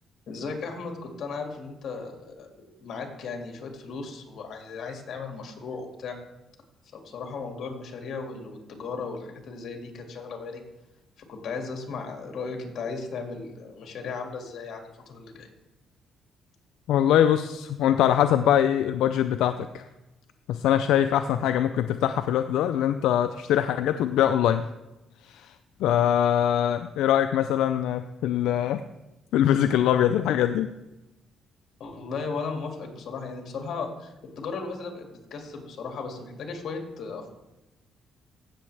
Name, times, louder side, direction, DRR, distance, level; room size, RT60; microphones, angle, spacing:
voice 1, 0.3-6.2 6.9-10.6 11.2-15.5 31.8-37.4, left 4 dB, 65° left, 3 dB, 2.1 m, -36 dB
voice 2, 16.9-19.8 20.5-24.6 25.2-25.5 25.8-28.8 29.3-30.7, left 10 dB, 85° left, 9 dB, 0.4 m, -23 dB
15.5 x 7.1 x 3.3 m, 0.99 s
cardioid pair, 90°, 0 cm